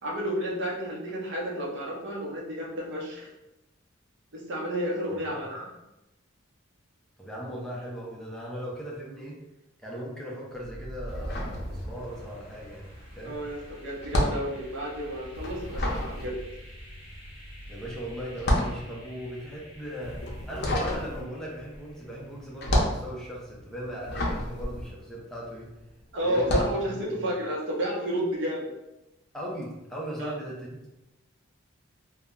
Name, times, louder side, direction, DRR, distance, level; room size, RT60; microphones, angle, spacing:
voice 1, 0.0-3.3 4.3-5.7 13.2-16.3 26.1-28.7 30.2-30.3, equal, 60° right, -3 dB, 0.7 m, -31 dB
voice 2, 7.2-9.4 9.8-12.9 13.2-13.4 17.7-25.7 26.2-27.2 29.3-30.9, equal, 5° left, -4 dB, 0.5 m, -38 dB
sound 1, 10.5-22.4, equal, 85° right, 1.0 m, -45 dB
sound 2, 11.1-12.3 12.6-25.8 26.3-26.8, left 1 dB, 55° left, 0.6 m, -30 dB
2.2 x 2.1 x 3.6 m, 0.95 s
head